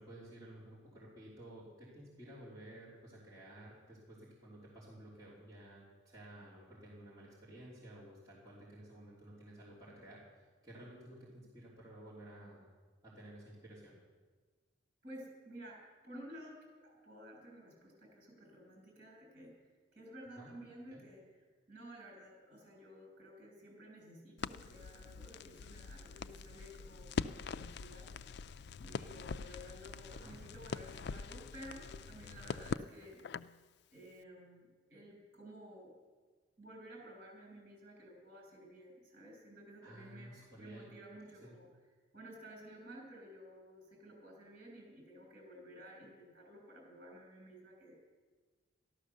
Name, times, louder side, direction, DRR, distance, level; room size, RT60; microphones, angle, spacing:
voice 1, 0.0-12.7 13.0-14.0 20.3-20.5 20.9-21.0 30.1-30.4 39.8-40.9 41.3-41.5, right 1 dB, 20° right, -9 dB, 2.9 m, -54 dB
voice 2, 15.0-19.5 19.9-21.2 21.7-28.3 28.8-33.2 33.9-35.9 36.6-41.7 42.1-47.9, equal, 45° right, 0 dB, 5.8 m, -53 dB
Crackle, 24.4-33.6, left 5 dB, 55° left, 0.3 m, -43 dB
13.5 x 12.0 x 6.6 m, 1.4 s
head